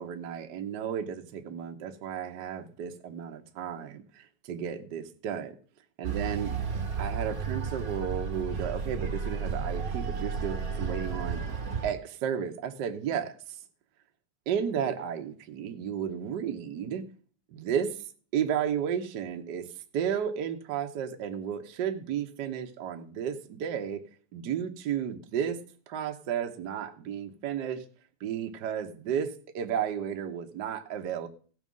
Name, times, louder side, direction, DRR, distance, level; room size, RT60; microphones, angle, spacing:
voice 1, 0.0-5.5 6.0-6.5 7.0-11.4 11.8-13.4 14.5-17.0 17.5-18.0 18.3-19.7 19.9-24.0 24.3-27.8 28.2-31.3, right 8 dB, 75° right, 0.9 m, -33 dB
sound 1, 6.0-11.9, right 5 dB, 45° right, 1.2 m, -33 dB
16.0 x 6.3 x 5.4 m
omnidirectional pair, 3.3 m